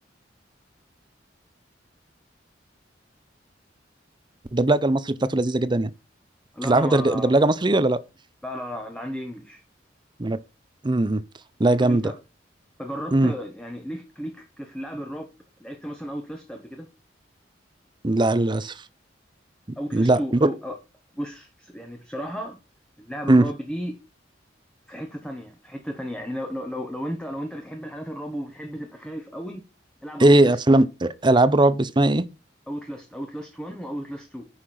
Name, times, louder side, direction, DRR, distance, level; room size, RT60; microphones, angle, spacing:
voice 1, 4.5-5.9 6.6-8.0 10.2-10.4 10.8-11.2 11.6-12.1 13.1-13.3 18.0-18.7 19.9-20.5 23.3-23.5 30.2-32.2, right 2 dB, 25° right, 0.6 m, -19 dB
voice 2, 6.5-7.3 8.4-9.6 11.7-12.1 12.8-15.3 15.6-16.9 19.8-20.8 21.1-22.6 23.0-23.9 24.9-29.6 30.0-30.6 32.7-34.5, equal, 5° left, 1.2 m, -34 dB
9.8 x 5.9 x 4.3 m
head